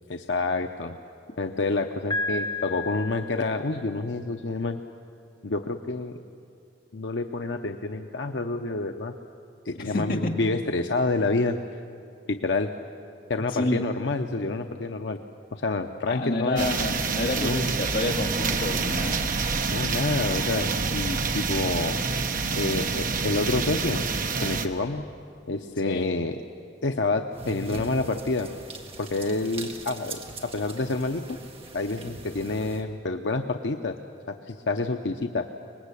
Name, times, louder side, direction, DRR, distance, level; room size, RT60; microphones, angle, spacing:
voice 1, 0.1-1.0 1.4-4.8 5.4-6.2 6.9-9.1 9.7-11.5 12.3-12.7 13.3-15.2 15.5-16.7 17.3-17.6 19.7-22.0 22.5-24.0 24.4-25.1 25.5-26.4 26.8-28.5 29.0-31.4 31.7-34.0 34.3-35.5, left 3 dB, 85° left, 5 dB, 0.8 m, -28 dB
Piano, 2.1-4.0, left 2 dB, 25° left, 1.9 m, -32 dB
voice 2, 9.7-10.4 13.5-13.8 16.1-19.3 25.8-26.1, left 1 dB, 55° left, 2 dB, 2.2 m, -29 dB
sound 1, 16.6-24.7, right 4 dB, 50° right, 1.1 m, -27 dB
sound 2, 27.3-32.8, right 2 dB, 35° right, 1.8 m, -41 dB
24.5 x 20.0 x 8.4 m, 2.5 s
head